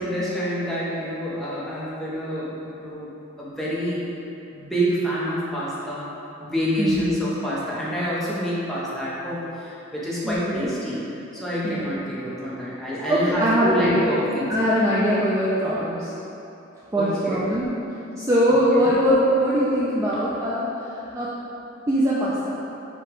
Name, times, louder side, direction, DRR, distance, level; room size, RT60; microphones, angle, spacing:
voice 1, 0.0-3.1 3.4-4.1 4.5-6.1 6.4-11.0 11.3-14.7 16.9-17.4 18.7-18.9, equal, ahead, -9 dB, 0.8 m, -27 dB
voice 2, 6.8-7.1 10.2-10.7 11.6-12.0 13.1-14.1 14.5-16.1 16.9-17.7 18.2-20.7 21.1-21.3 21.9-22.5, equal, 15° right, -8 dB, 0.4 m, -22 dB
4.9 x 2.3 x 4.6 m, 2.9 s
head